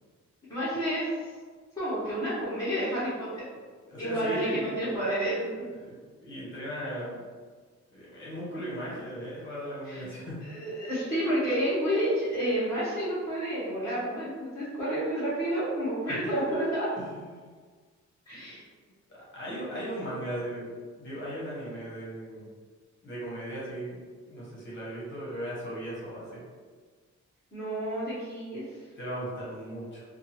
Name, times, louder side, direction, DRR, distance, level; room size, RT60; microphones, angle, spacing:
voice 1, 0.5-1.3 1.8-3.4 4.0-5.7 9.9-10.1 10.4-16.9 18.3-18.6 27.5-28.6, right 1 dB, 10° left, -13 dB, 1.0 m, -30 dB
voice 2, 3.9-4.9 5.6-6.0 6.2-7.3 7.9-10.4 16.5-16.6 17.0-17.5 18.3-18.4 19.1-22.4 23.0-24.0 24.3-26.4 28.7-30.0, right 1 dB, 40° left, -7 dB, 1.0 m, -37 dB
2.6 x 2.3 x 2.9 m, 1.5 s
wide cardioid pair, 175°, 30 cm